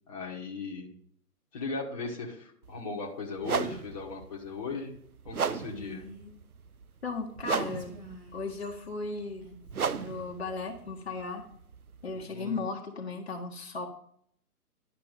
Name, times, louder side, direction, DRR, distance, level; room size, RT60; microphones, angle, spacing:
voice 1, 0.1-0.9 1.5-4.9 5.2-6.1 12.1-12.6, left 4 dB, 25° left, -1 dB, 1.5 m, -37 dB
sound 1, 2.6-2.8 3.4-12.2, right 6 dB, 70° right, 0.7 m, -36 dB
Female speech woman speaking, 5.6-6.3 7.4-8.9 9.4-10.3, right 1 dB, 5° right, 0.9 m, -49 dB
voice 2, 7.0-8.0 8.3-9.4 10.0-11.4 12.0-13.9, left 4 dB, 40° left, 1 dB, 1.4 m, -36 dB
11.0 x 6.7 x 5.0 m, 0.64 s
figure-of-eight pair, 140°, 46 cm